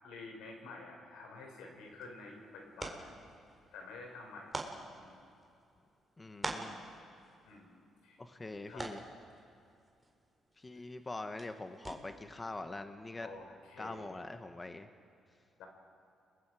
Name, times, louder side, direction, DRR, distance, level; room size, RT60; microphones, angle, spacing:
voice 1, 0.0-3.1 3.7-4.7 5.0-5.2 7.5-7.8 8.0-8.2 8.7-8.8 13.2-14.2 15.6-15.7, left 3 dB, 90° left, 1 dB, 5.2 m, -49 dB
sound 1, 1.6-12.4, right 2 dB, 20° right, 3.7 m, -48 dB
voice 2, 6.2-6.8 8.2-9.0 10.6-13.3 13.8-14.9, left 2 dB, 20° left, 7 dB, 1.2 m, -43 dB
30.0 x 22.0 x 4.9 m, 2.5 s
cardioid pair, 90°, 0 cm